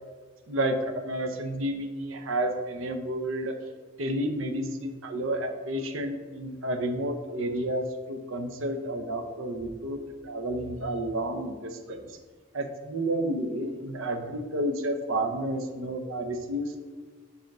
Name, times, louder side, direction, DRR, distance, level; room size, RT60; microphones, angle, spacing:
voice 1, 0.5-3.5 4.0-12.0 12.5-16.8, right 1 dB, 80° right, 6 dB, 0.8 m, -31 dB
5.1 x 4.8 x 6.0 m, 1.5 s
head